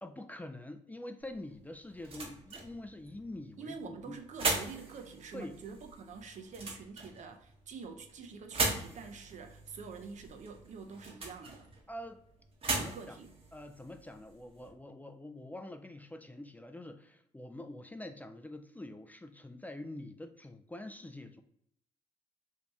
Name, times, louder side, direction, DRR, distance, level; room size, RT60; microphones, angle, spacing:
voice 1, 0.0-4.2 5.3-5.6 11.9-12.2 12.7-13.2 13.5-21.4, left 1 dB, 10° left, 6 dB, 0.4 m, -45 dB
sound 1, 1.2-14.7, right 3 dB, 40° right, 0.9 m, -40 dB
voice 2, 3.6-11.7 12.7-13.3, right 5 dB, 55° right, 6 dB, 0.6 m, -46 dB
2.9 x 2.7 x 3.4 m, 0.72 s
supercardioid pair, 50°, 15 cm